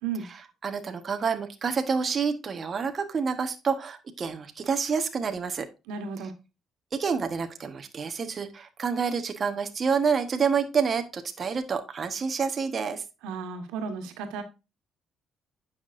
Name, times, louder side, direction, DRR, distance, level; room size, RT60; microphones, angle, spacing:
voice 1, 0.3-5.7 7.0-13.0, right 6 dB, 40° right, 6 dB, 1.2 m, -28 dB
voice 2, 5.9-6.3 13.2-14.4, right 5 dB, 90° right, 7 dB, 1.5 m, -33 dB
9.3 x 6.0 x 2.6 m, 0.28 s
cardioid pair, 80°, 0 cm